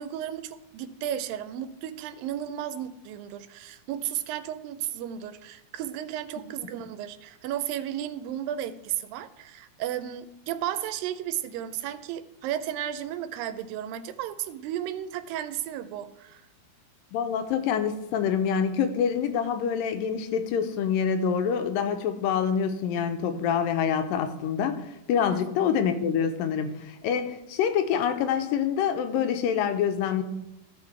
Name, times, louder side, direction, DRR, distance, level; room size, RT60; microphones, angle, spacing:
voice 1, 0.0-16.4 25.3-25.4, right 11 dB, 90° right, 10 dB, 2.3 m, -34 dB
voice 2, 17.1-24.8 25.1-30.2, left 7 dB, 85° left, 8 dB, 2.4 m, -26 dB
15.5 x 5.2 x 3.2 m, 0.92 s
omnidirectional pair, 3.9 m